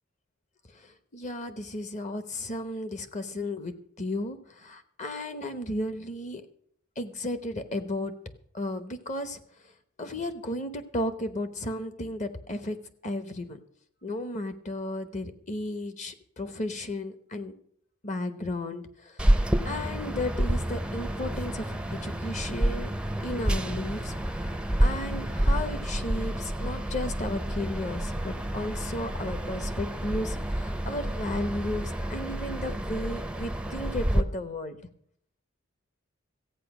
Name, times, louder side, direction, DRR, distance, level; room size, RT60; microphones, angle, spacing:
voice 1, 0.7-6.5 7.0-8.1 8.5-9.7 10.0-12.8 13.0-13.6 14.0-17.5 18.0-22.9 23.2-34.8, left 1 dB, 35° left, 10 dB, 1.0 m, -34 dB
sound 1, 19.2-34.2, right 1 dB, 5° right, 0.6 m, -29 dB
14.5 x 8.8 x 6.0 m, 0.64 s
head